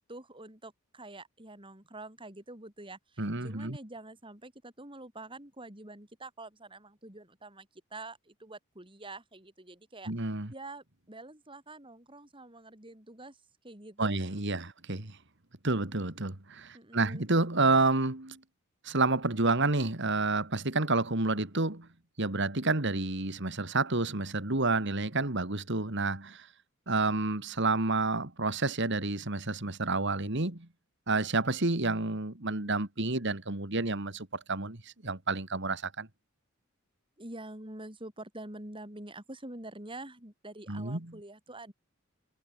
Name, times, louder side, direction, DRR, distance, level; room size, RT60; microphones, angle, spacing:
voice 1, 0.1-10.1 10.5-13.4 13.6-14.2 16.7-17.3 37.2-41.7, right 2 dB, 25° right, 5.0 m, -46 dB
voice 2, 3.2-3.8 10.1-10.5 14.0-15.2 15.6-18.4 18.8-21.9 22.2-26.5 26.9-30.7 31.1-36.1 40.7-41.1, right 3 dB, 55° right, 2.4 m, -29 dB
head